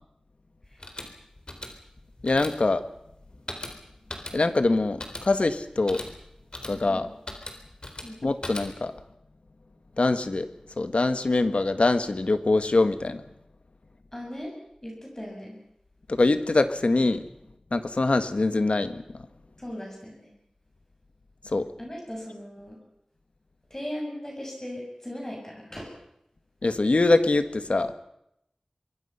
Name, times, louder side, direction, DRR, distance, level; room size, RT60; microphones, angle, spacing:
sound 1, 0.6-9.0, left 1 dB, 45° left, 3.9 m, -41 dB
voice 1, 2.2-2.8 4.3-6.0 6.6-7.1 8.2-8.9 10.0-10.5 10.8-13.2 16.1-17.3 17.7-19.0 21.4-21.7 26.6-27.9, left 2 dB, 70° left, 10 dB, 1.6 m, -23 dB
voice 2, 14.1-14.6 14.8-15.6 19.6-20.3 21.8-22.8 23.7-25.9, equal, 20° left, -1 dB, 7.2 m, -38 dB
25.0 x 22.5 x 5.8 m, 0.79 s
wide cardioid pair, 60°, 2 cm